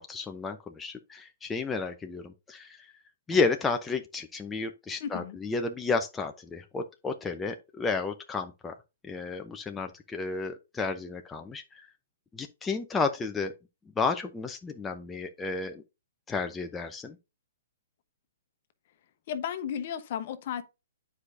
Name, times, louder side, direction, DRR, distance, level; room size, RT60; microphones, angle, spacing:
voice 1, 0.0-2.8 3.3-8.7 9.0-11.6 12.3-13.5 14.0-15.8 16.3-17.2, left 4 dB, 10° left, 0.7 m, -32 dB
voice 2, 5.0-5.4 19.3-20.7, left 8 dB, 50° left, 1.0 m, -34 dB
9.6 x 4.9 x 2.6 m
hypercardioid pair, 125°, 0 cm